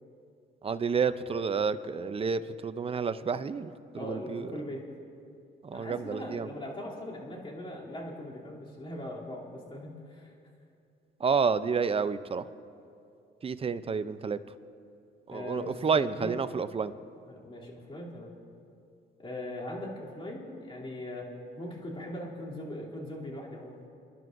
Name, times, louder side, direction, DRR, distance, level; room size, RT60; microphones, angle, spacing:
voice 1, 0.6-4.5 5.6-6.5 11.2-12.4 13.4-14.4 15.3-16.9, right 5 dB, 30° right, 13 dB, 0.5 m, -30 dB
voice 2, 3.9-4.8 5.7-10.3 15.3-16.3 17.2-18.3 19.2-23.8, left 1 dB, 25° left, -5 dB, 2.9 m, -40 dB
29.0 x 11.0 x 2.6 m, 2.5 s
cardioid pair, 90°, 20 cm